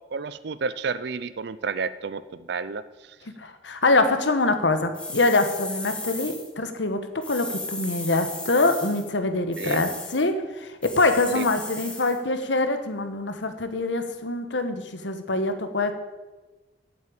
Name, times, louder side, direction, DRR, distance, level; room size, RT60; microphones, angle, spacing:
voice 1, 0.1-2.8 9.6-9.8 11.3-11.5, right 5 dB, 65° right, 15 dB, 0.5 m, -30 dB
voice 2, 3.4-15.9, left 2 dB, 80° left, 8 dB, 1.4 m, -24 dB
sound 1, 4.9-6.5 7.2-9.1 9.5-10.2 10.8-12.2, left 2 dB, 5° left, 1.6 m, -36 dB
8.6 x 8.4 x 8.8 m, 1.2 s
head